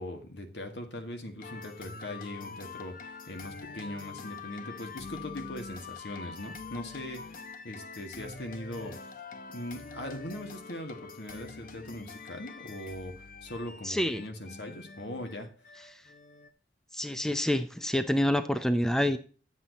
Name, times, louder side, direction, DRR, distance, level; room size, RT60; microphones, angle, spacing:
voice 1, 0.0-9.0 9.5-15.5, left 1 dB, 75° left, 5 dB, 1.9 m, -40 dB
sound 1, 1.4-16.5, left 4 dB, 50° left, 0.8 m, -45 dB
voice 2, 13.8-14.2 16.9-19.2, left 1 dB, 5° left, 10 dB, 0.5 m, -27 dB
10.0 x 7.5 x 4.0 m, 0.39 s
head